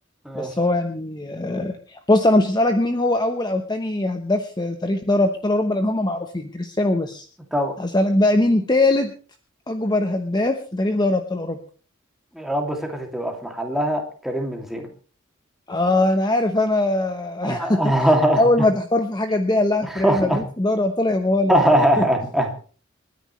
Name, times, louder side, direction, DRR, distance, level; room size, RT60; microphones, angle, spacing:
voice 1, 0.3-7.3 7.8-9.1 9.7-11.6 15.7-17.8 18.4-21.6 22.0-22.1, left 2 dB, 20° left, 6 dB, 1.0 m, -21 dB
voice 2, 12.3-14.9 17.4-18.4 19.9-20.4 21.5-22.5, right 1 dB, ahead, 2 dB, 2.6 m, -21 dB
28.5 x 10.5 x 3.2 m, 0.39 s
head